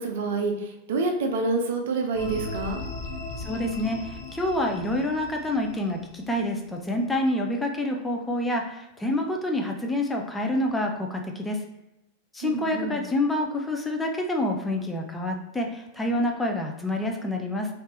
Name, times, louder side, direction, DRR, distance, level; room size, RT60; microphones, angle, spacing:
voice 1, 0.0-2.8 12.4-13.0, right 3 dB, 55° right, 3 dB, 0.5 m, -27 dB
sound 1, 2.1-6.9, left 2 dB, 40° left, 0.7 m, -38 dB
voice 2, 3.4-11.6 12.3-17.7, left 1 dB, 10° left, 2 dB, 0.5 m, -27 dB
3.3 x 2.8 x 3.0 m, 0.89 s
figure-of-eight pair, 90°, 0 cm